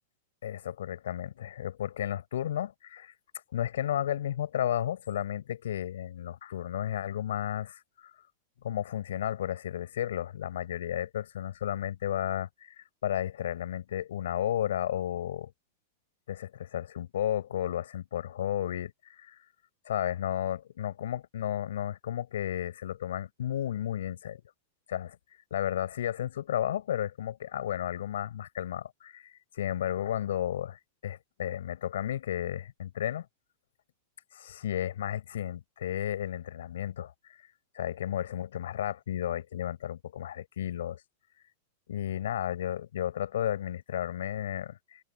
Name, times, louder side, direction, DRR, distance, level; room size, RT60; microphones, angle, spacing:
voice 1, 0.4-3.1 3.5-8.1 8.6-12.5 12.8-15.5 16.3-19.4 19.9-24.4 24.9-25.2 25.5-29.2 29.5-33.3 34.3-37.1 37.7-41.0 41.9-45.0, left 11 dB, 90° left, 8.0 m, -33 dB
supercardioid pair, 160°, 0 cm